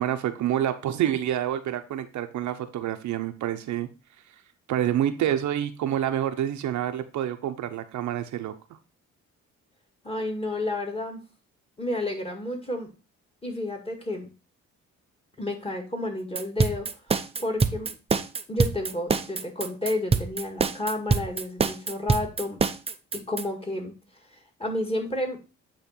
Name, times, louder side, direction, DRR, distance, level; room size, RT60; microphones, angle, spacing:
voice 1, 0.0-3.9 4.7-8.5, right 11 dB, 70° right, 8 dB, 0.7 m, -27 dB
voice 2, 10.0-11.2 11.8-12.9 13.4-14.3 15.4-16.9 17.4-17.9 18.5-22.6 23.1-23.9 24.6-25.4, left 1 dB, 20° left, 1 dB, 2.0 m, -30 dB
sound 1, 16.4-23.4, right 4 dB, 20° right, 0.5 m, -25 dB
8.6 x 3.1 x 4.4 m, 0.30 s
cardioid pair, 90°, 30 cm